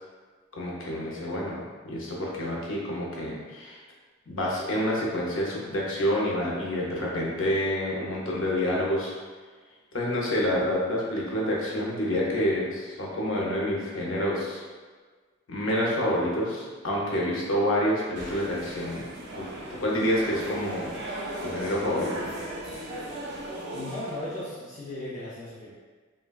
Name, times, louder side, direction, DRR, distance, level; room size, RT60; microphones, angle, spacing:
voice 1, 0.5-3.8 4.3-9.2 9.9-14.6 15.5-19.0 19.3-21.0 21.4-22.3, equal, 90° left, -4 dB, 0.7 m, -28 dB
sound 1, 18.1-24.5, right 1 dB, 60° right, 0.6 m, -37 dB
voice 2, 23.7-25.7, left 1 dB, 45° left, -10 dB, 0.5 m, -36 dB
3.2 x 2.2 x 2.3 m, 1.4 s
head